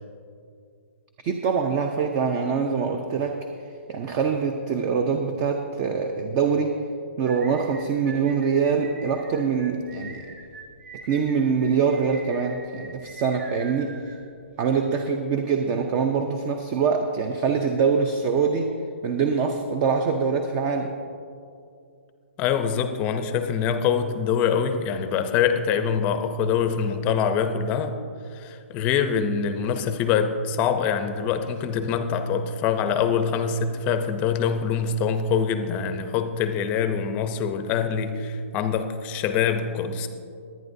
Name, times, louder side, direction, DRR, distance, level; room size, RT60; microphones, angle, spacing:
voice 1, 1.2-3.5 3.9-6.8 7.2-10.2 11.0-14.1 14.6-18.8 19.0-20.9, right 5 dB, 25° right, 5 dB, 0.6 m, -24 dB
sound 1, 7.2-14.6, right 3 dB, 90° right, 2.8 m, -44 dB
voice 2, 22.4-28.0 28.3-40.1, left 7 dB, 20° left, 8 dB, 0.6 m, -24 dB
22.0 x 9.2 x 2.7 m, 2.4 s
hypercardioid pair, 160°, 7 cm